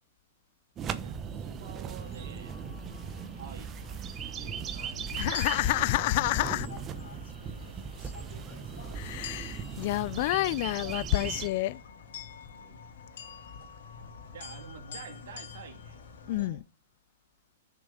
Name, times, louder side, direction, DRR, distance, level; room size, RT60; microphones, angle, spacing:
sound 1, 0.8-11.5, right 7 dB, 25° right, 1.0 m, -38 dB
voice 1, 1.0-2.6 3.3-3.8 4.4-5.1 9.2-9.6 12.5-13.0 14.3-16.6, right 7 dB, 70° right, 2.2 m, -49 dB
sound 2, 2.0-16.5, left 5 dB, 70° left, 2.3 m, -46 dB
voice 2, 5.1-6.7 8.9-11.8 16.3-16.6, left 18 dB, 50° left, 0.4 m, -29 dB
6.9 x 6.3 x 6.9 m
hypercardioid pair, 120°, 0 cm